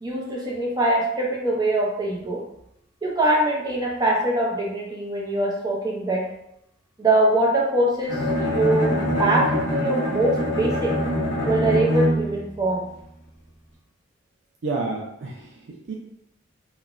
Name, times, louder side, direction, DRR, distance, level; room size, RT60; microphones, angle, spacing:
voice 1, 0.0-2.4 3.0-6.3 7.0-11.0 11.5-12.9, right 1 dB, 20° right, -3 dB, 0.6 m, -23 dB
Bowed string instrument, 8.1-12.5, equal, 55° left, 0.9 m, -24 dB
voice 2, 14.6-15.9, right 3 dB, 65° right, -2 dB, 0.4 m, -30 dB
2.9 x 2.1 x 2.4 m, 0.78 s
head